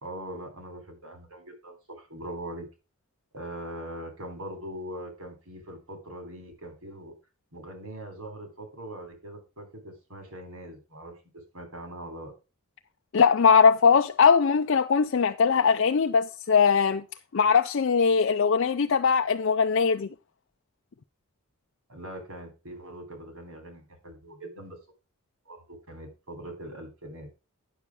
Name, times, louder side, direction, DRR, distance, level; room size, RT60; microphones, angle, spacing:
voice 1, 0.0-2.7 3.3-7.1 7.5-11.1 11.5-12.3 21.9-24.8 25.5-27.3, right 1 dB, 80° right, 3.5 m, -41 dB
voice 2, 13.1-17.0 17.3-20.1, left 6 dB, 55° left, 0.4 m, -21 dB
9.3 x 6.9 x 4.8 m
head